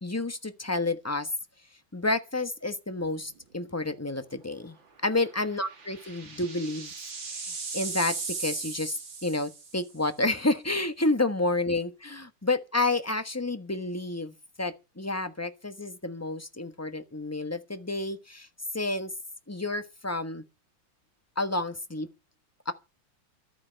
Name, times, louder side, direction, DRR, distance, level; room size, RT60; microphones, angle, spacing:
voice 1, 0.0-1.3 1.9-4.8 5.0-6.9 7.3-18.5 18.7-19.1 19.5-20.4 21.4-22.1 22.7-22.8, left 2 dB, 10° left, 0.7 m, -30 dB
sound 1, 3.1-3.4 3.7-3.8 5.3-9.9, right 4 dB, 65° right, 3.4 m, -37 dB
13.5 x 9.7 x 6.7 m
omnidirectional pair, 2.2 m